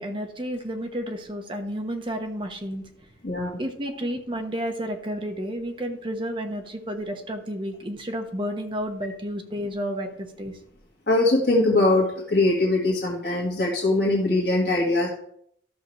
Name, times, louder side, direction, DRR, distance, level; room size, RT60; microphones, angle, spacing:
voice 1, 0.0-2.9 3.6-10.6, equal, 30° right, 5 dB, 1.0 m, -31 dB
voice 2, 3.2-3.6 11.1-15.1, left 2 dB, 60° left, -3 dB, 1.6 m, -22 dB
13.0 x 6.6 x 3.2 m, 0.70 s
head